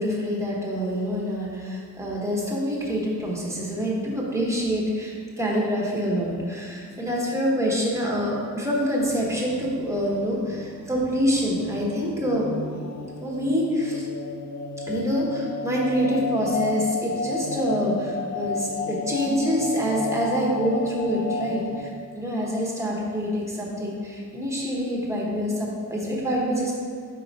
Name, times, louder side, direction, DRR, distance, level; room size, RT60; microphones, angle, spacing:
voice 1, 0.0-12.5 13.2-14.1 14.9-26.7, equal, 10° right, -4 dB, 1.0 m, -26 dB
sound 1, 9.0-21.8, left 4 dB, 55° left, 0.6 m, -33 dB
5.7 x 4.7 x 4.0 m, 2.1 s
wide cardioid pair, 170°, 33 cm